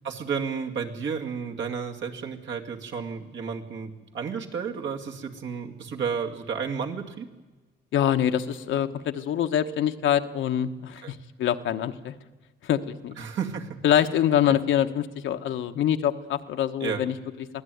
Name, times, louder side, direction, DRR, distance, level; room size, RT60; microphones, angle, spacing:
voice 1, 0.0-7.3 11.0-11.1 13.2-13.8 16.8-17.0, right 6 dB, 70° right, 2 dB, 2.5 m, -32 dB
voice 2, 7.9-12.1 12.6-13.2 13.8-17.5, left 10 dB, 75° left, 7 dB, 1.2 m, -25 dB
22.5 x 16.0 x 9.4 m, 1.2 s
cardioid pair, 90°, 20 cm